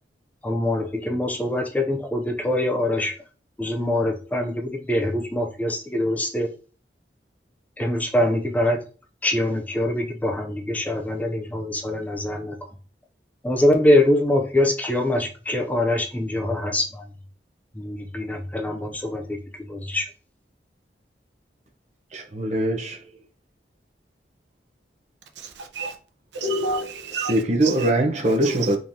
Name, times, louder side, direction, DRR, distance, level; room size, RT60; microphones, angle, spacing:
voice 1, 0.4-3.1 3.6-6.5 7.8-8.8 9.2-12.5 13.4-17.1 17.7-20.1, left 1 dB, 10° left, 0.4 m, -24 dB
voice 2, 22.1-23.0 27.3-28.8, right 1 dB, 40° right, 0.7 m, -22 dB
voice 3, 25.4-25.9 26.3-27.9 28.3-28.8, right 2 dB, 85° right, 0.7 m, -30 dB
3.8 x 3.0 x 2.6 m
head